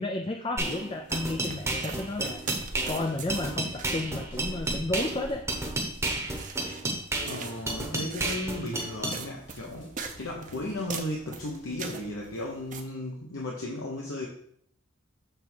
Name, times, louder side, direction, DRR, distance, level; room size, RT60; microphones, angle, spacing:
voice 1, 0.0-2.4 2.9-5.5, left 2 dB, 25° left, 4 dB, 0.4 m, -32 dB
sound 1, 0.6-9.2, right 2 dB, 15° right, 1.0 m, -32 dB
sound 2, 1.0-12.8, right 4 dB, 40° right, 0.7 m, -42 dB
sound 3, 1.4-11.5, left 1 dB, 60° left, 2.1 m, -51 dB
voice 2, 7.2-14.3, left 1 dB, 75° left, -2 dB, 1.1 m, -35 dB
6.8 x 3.6 x 6.2 m, 0.65 s
head